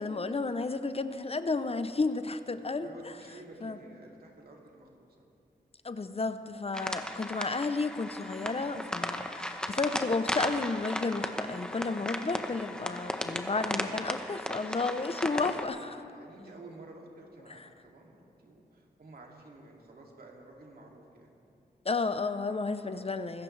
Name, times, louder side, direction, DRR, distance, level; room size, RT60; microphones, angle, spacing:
voice 1, 0.0-2.9 3.6-3.8 5.8-16.0 17.5-17.7 21.8-23.4, left 3 dB, 35° left, 10 dB, 0.7 m, -32 dB
voice 2, 2.5-5.3 15.6-15.8 16.1-21.3 22.8-23.1, right 2 dB, 70° right, -1 dB, 2.6 m, -52 dB
sound 1, 6.7-15.6, equal, 5° left, 1.0 m, -36 dB
25.5 x 14.0 x 3.3 m, 2.5 s
wide cardioid pair, 80°, 17 cm